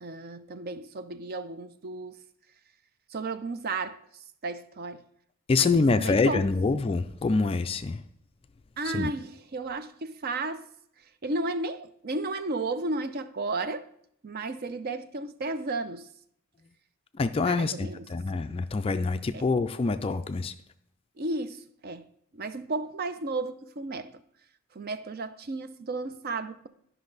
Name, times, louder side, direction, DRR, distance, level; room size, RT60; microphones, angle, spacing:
voice 1, 0.0-2.1 3.1-4.0 4.4-5.0 5.5-6.5 8.8-10.7 11.2-13.9 14.2-16.1 17.4-18.0 19.3-19.5 21.2-22.0 22.3-24.2 24.7-26.7, right 3 dB, 45° right, 0.5 m, -33 dB
voice 2, 5.5-8.0 8.9-9.1 17.2-20.5, left 3 dB, 25° left, 0.3 m, -26 dB
11.5 x 5.6 x 4.0 m
head